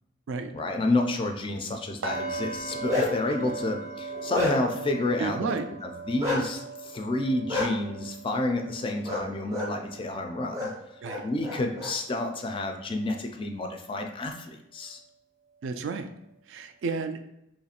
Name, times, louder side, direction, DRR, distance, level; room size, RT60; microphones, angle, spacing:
voice 1, 0.5-5.6 5.8-10.7 11.2-15.0, left 2 dB, 25° left, 4 dB, 0.3 m, -30 dB
sound 1, 2.0-12.0 12.3-12.6 13.0-13.1, right 3 dB, 90° right, 0.7 m, -40 dB
Bark, 2.5-3.3 3.8-4.8 6.2-6.4 7.5-7.7 9.0-9.2 9.5-9.7 10.5-10.7 11.0-11.9, left 2 dB, 15° right, 0.6 m, -29 dB
voice 2, 5.2-5.7 11.0-11.2 15.6-16.1 16.5-17.2, right 4 dB, 65° right, 8 dB, 0.3 m, -32 dB
3.0 x 2.4 x 4.2 m, 0.82 s
head